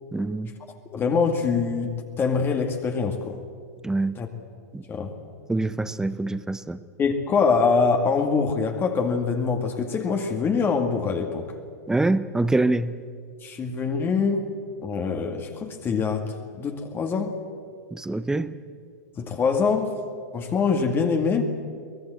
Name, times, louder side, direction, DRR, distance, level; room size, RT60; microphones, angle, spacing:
voice 1, 0.1-0.5 3.8-4.2 4.7-4.8 5.5-6.8 11.9-13.0 17.9-18.5, right 2 dB, 5° right, 14 dB, 0.8 m, -25 dB
voice 2, 0.9-3.4 4.2-4.3 4.9-5.1 7.0-11.5 13.4-14.5 14.8-16.3 16.5-17.4 19.2-20.0 20.3-21.4, left 5 dB, 25° left, 4 dB, 2.0 m, -24 dB
23.5 x 18.5 x 7.9 m, 2.2 s
hypercardioid pair, 115°, 9 cm